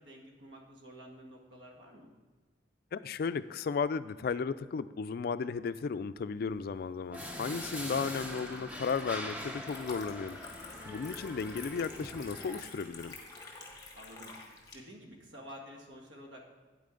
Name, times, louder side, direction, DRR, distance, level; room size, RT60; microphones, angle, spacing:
voice 1, 0.0-2.1 13.9-16.5, equal, 85° right, 0 dB, 1.9 m, -50 dB
voice 2, 2.9-10.4 10.9-13.1, left 5 dB, 55° left, 14 dB, 0.3 m, -34 dB
Liquid, 6.4-14.8, left 3 dB, 20° left, 1.4 m, -50 dB
sound 1, 7.1-12.6, equal, 10° right, 0.9 m, -42 dB
9.2 x 8.9 x 3.8 m, 1.4 s
head